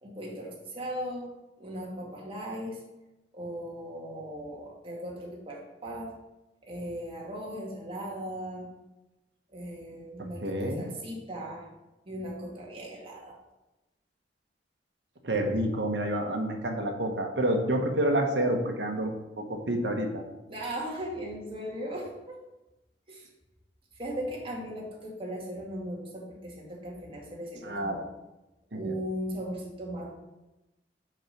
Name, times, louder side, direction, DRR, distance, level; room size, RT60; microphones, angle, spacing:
voice 1, 0.0-2.8 3.3-6.1 6.6-8.7 9.5-11.7 12.1-13.4 20.5-22.4 23.1-23.3 23.9-28.1 28.7-30.1, equal, 30° right, -3 dB, 2.0 m, -38 dB
voice 2, 10.4-10.8 15.2-19.1 19.5-20.2 27.6-28.0 28.7-28.9, right 1 dB, 75° right, 3 dB, 1.2 m, -28 dB
6.3 x 5.2 x 5.9 m, 1.0 s
head